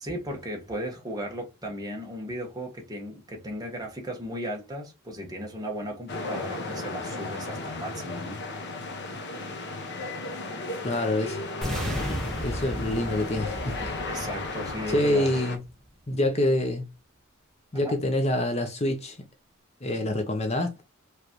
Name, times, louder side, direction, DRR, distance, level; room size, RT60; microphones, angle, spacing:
voice 1, 0.0-8.4 14.1-15.4 17.8-18.0, equal, 20° right, 1.5 m, -36 dB
sound 1, 6.1-15.6, left 2 dB, 50° left, 1.0 m, -35 dB
voice 2, 10.8-11.4 11.8-13.9 14.9-15.6 16.1-16.9 17.7-19.2 19.8-20.8, left 1 dB, 30° left, 0.7 m, -26 dB
sound 2, 11.6-15.6, equal, ahead, 1.3 m, -34 dB
4.9 x 3.3 x 3.0 m
head